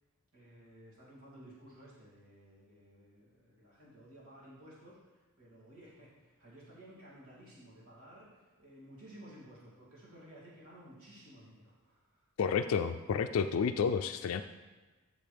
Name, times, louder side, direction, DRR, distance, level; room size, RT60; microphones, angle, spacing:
voice 1, 0.3-12.3, right 1 dB, 80° right, -7 dB, 2.7 m, -55 dB
voice 2, 12.4-14.4, left 6 dB, 70° left, 7 dB, 0.3 m, -30 dB
12.5 x 7.0 x 3.4 m, 1.3 s
head